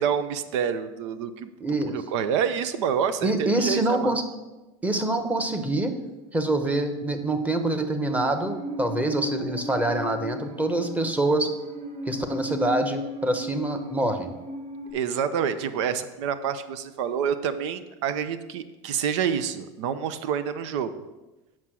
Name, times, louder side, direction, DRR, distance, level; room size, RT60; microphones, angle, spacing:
voice 1, 0.0-1.5 1.9-4.2 14.9-21.0, right 7 dB, 80° right, 13 dB, 0.7 m, -27 dB
voice 2, 1.6-2.0 3.2-4.2 4.8-5.9 6.3-11.5 12.0-14.3, right 2 dB, 10° right, 7 dB, 1.0 m, -25 dB
Musical instrument, 8.1-14.9, equal, 45° right, 1.8 m, -35 dB
8.4 x 6.1 x 6.2 m, 1.1 s
supercardioid pair, 120°, 15 cm